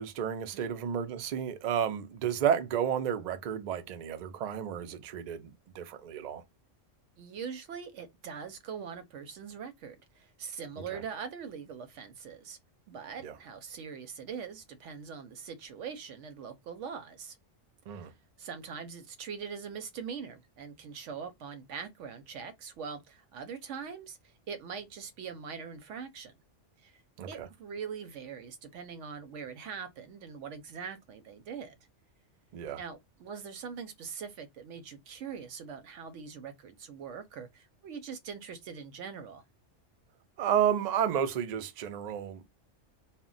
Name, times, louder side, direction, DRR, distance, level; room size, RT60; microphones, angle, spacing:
voice 1, 0.0-6.4 10.9-11.0 13.2-13.3 17.9-18.1 27.2-27.5 32.5-32.8 40.4-42.4, right 9 dB, 65° right, 0.4 m, -31 dB
voice 2, 7.2-12.6 12.9-17.4 18.0-18.1 18.4-26.3 26.8-27.0 27.3-31.8 32.8-39.4, right 6 dB, 85° right, 0.9 m, -42 dB
2.1 x 2.1 x 3.6 m
omnidirectional pair, 1.2 m